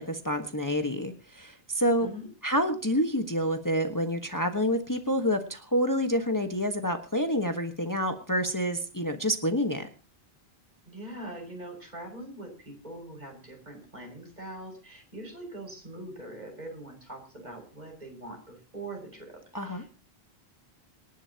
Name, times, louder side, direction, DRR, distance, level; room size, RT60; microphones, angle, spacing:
voice 1, 0.0-2.1 2.4-9.9 19.5-19.8, equal, 20° left, 5 dB, 1.4 m, -28 dB
voice 2, 10.8-19.9, right 1 dB, 45° right, 1 dB, 6.5 m, -42 dB
27.0 x 11.0 x 2.9 m, 0.33 s
omnidirectional pair, 1.0 m